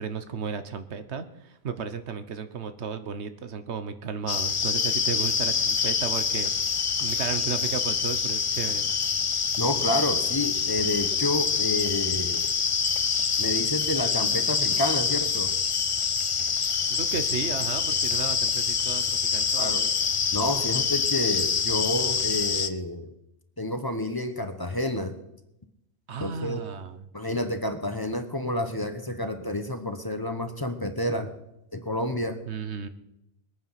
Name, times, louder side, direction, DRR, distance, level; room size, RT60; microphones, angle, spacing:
voice 1, 0.0-8.9 16.8-19.9 26.1-27.1 32.5-32.9, right 6 dB, 85° right, 11 dB, 1.3 m, -34 dB
sound 1, 4.3-22.7, left 6 dB, 35° left, 0.5 m, -26 dB
voice 2, 9.6-12.5 13.4-15.5 19.6-19.8 20.3-23.1 23.6-25.2 26.2-26.6 27.1-31.3 31.7-32.4, left 1 dB, 20° left, 7 dB, 1.1 m, -29 dB
21.0 x 9.3 x 5.8 m, 0.86 s
omnidirectional pair, 1.1 m